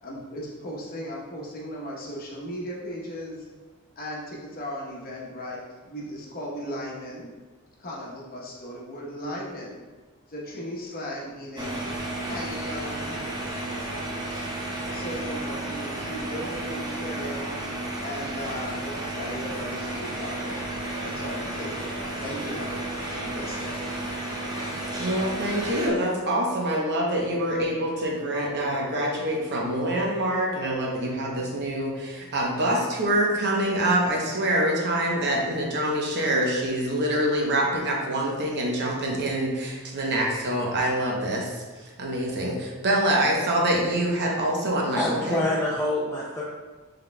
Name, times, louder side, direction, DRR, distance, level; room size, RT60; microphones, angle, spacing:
voice 1, 0.0-3.5 4.0-7.3 7.8-9.8 10.3-11.8 12.2-14.4 14.9-17.5 18.0-20.5 21.0-21.9 22.2-22.8 23.1-23.8, equal, 45° left, -3 dB, 0.9 m, -37 dB
sound 1, 11.6-25.9, right 1 dB, 20° right, 0.7 m, -32 dB
voice 2, 25.0-45.4, right 1 dB, 50° right, -1 dB, 0.8 m, -25 dB
voice 3, 45.0-46.4, left 1 dB, 10° left, -6 dB, 0.4 m, -26 dB
5.2 x 3.8 x 2.2 m, 1.3 s
head